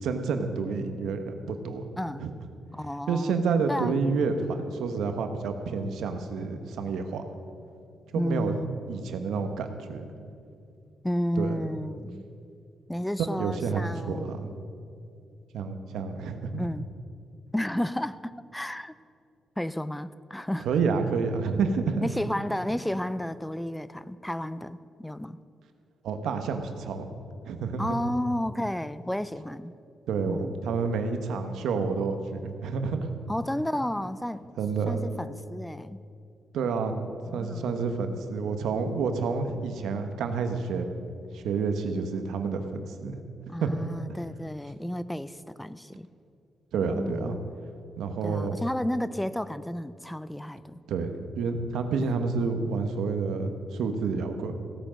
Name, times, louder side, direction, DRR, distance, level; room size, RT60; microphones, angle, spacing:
voice 1, 0.0-1.8 2.2-2.3 3.1-7.2 8.1-8.5 8.9-10.1 11.4-11.7 13.4-14.5 15.5-16.7 20.6-22.1 26.0-27.1 27.4-28.0 30.1-33.1 34.6-35.0 36.5-40.9 41.3-43.2 43.6-43.7 46.7-47.4 48.0-48.6 50.9-51.1 51.3-54.5, right 5 dB, 90° right, 7 dB, 1.2 m, -29 dB
voice 2, 2.0-2.3 2.7-3.3 3.7-4.0 8.2-8.7 11.0-12.3 12.9-14.4 16.6-16.9 17.5-18.9 19.6-20.7 22.0-25.4 27.8-29.8 30.3-30.6 33.3-34.5 34.9-36.0 37.3-37.8 43.5-46.1 46.8-47.4 48.2-50.8 52.0-52.2, left 1 dB, 5° left, 15 dB, 0.3 m, -32 dB
16.5 x 8.9 x 6.4 m, 2.4 s
cardioid pair, 130°, 0 cm